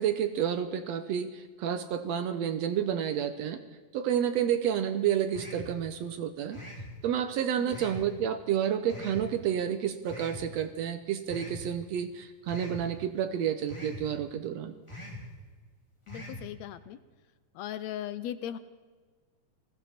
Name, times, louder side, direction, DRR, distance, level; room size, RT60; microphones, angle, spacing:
voice 1, 0.0-3.6 3.9-6.6 7.0-14.7, right 9 dB, 75° right, 10 dB, 1.8 m, -30 dB
sound 1, 5.3-5.7 6.5-6.9 7.7-8.1 8.9-9.3 10.1-10.4 11.3-11.6 12.5-12.8 13.7-14.0 14.9-15.2 16.1-16.4, equal, 10° left, 2.6 m, -42 dB
voice 2, 16.1-17.0 17.6-18.6, left 11 dB, 75° left, 13 dB, 1.7 m, -38 dB
19.5 x 15.5 x 4.3 m, 1.5 s
omnidirectional pair, 3.5 m